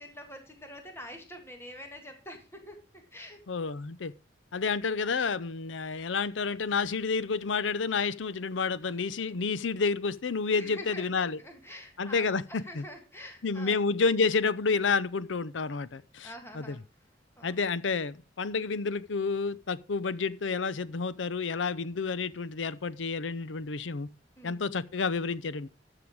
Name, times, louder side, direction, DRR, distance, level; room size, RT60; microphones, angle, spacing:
voice 1, 0.0-3.4 9.3-9.5 10.5-13.8 16.2-16.8 17.4-17.6 24.4-24.6, left 1 dB, 15° left, 1.9 m, -46 dB
voice 2, 3.5-4.1 4.5-11.4 12.0-12.8 13.4-16.8 17.4-24.1 24.4-25.7, left 4 dB, 80° left, 0.6 m, -30 dB
13.0 x 6.9 x 4.7 m
head